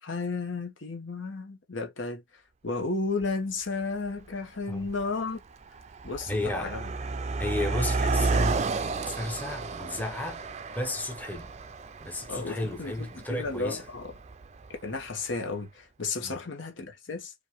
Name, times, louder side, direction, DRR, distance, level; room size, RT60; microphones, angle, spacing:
voice 1, 0.0-5.4 6.0-6.9 12.3-14.1 14.8-17.3, left 3 dB, 85° left, 1.2 m, -33 dB
Car passing by, 3.2-3.3 4.1-4.4 4.6-15.0, right 3 dB, 35° right, 0.4 m, -32 dB
voice 2, 6.3-6.9 7.4-10.4 10.8-11.5 12.0-13.9 16.2-16.4, left 1 dB, 10° left, 0.7 m, -33 dB
5.1 x 2.6 x 3.0 m
head